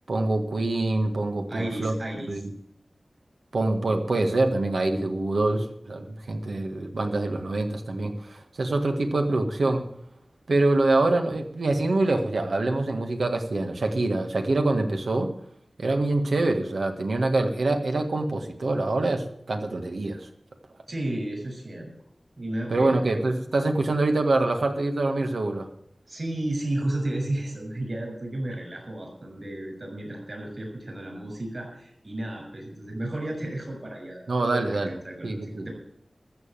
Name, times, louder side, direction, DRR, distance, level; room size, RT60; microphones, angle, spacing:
voice 1, 0.1-1.9 2.3-2.5 3.5-9.8 10.5-15.3 15.8-20.3 22.7-25.7 34.3-35.0 35.2-35.7, right 2 dB, 85° right, 5 dB, 1.7 m, -25 dB
voice 2, 1.5-2.3 20.9-21.9 22.4-23.0 26.1-34.3 34.6-35.7, right 1 dB, 50° right, 2 dB, 6.6 m, -33 dB
14.0 x 7.2 x 9.1 m, 0.70 s
wide cardioid pair, 65°, 0 cm